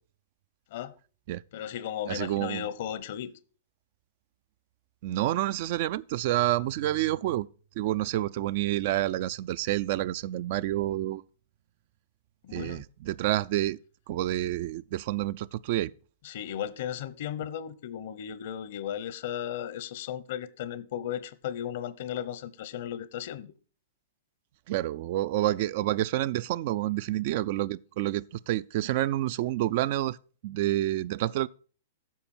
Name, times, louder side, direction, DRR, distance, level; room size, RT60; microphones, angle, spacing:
voice 1, 1.5-3.3 12.4-12.9 16.2-23.5, left 10 dB, 60° left, 0.9 m, -35 dB
voice 2, 2.1-2.7 5.0-7.5 7.8-11.2 12.5-13.8 14.1-15.9 24.7-30.2 30.4-31.5, right 14 dB, 55° right, 0.4 m, -28 dB
10.0 x 6.9 x 4.4 m
hypercardioid pair, 125°, 0 cm